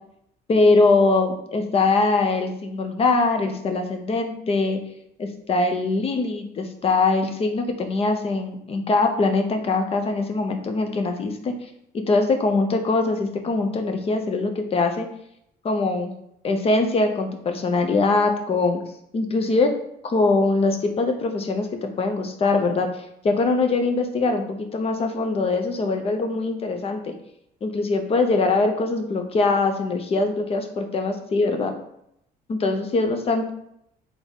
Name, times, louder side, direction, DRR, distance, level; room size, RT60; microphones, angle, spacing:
voice 1, 0.5-4.8 5.2-11.5 11.9-15.1 15.6-16.1 16.4-18.8 19.1-19.7 20.0-21.7 22.0-27.1 27.6-31.7 32.5-33.5, left 3 dB, 35° left, 5 dB, 0.7 m, -22 dB
4.0 x 3.5 x 3.6 m, 0.77 s
cardioid pair, 110°, 17 cm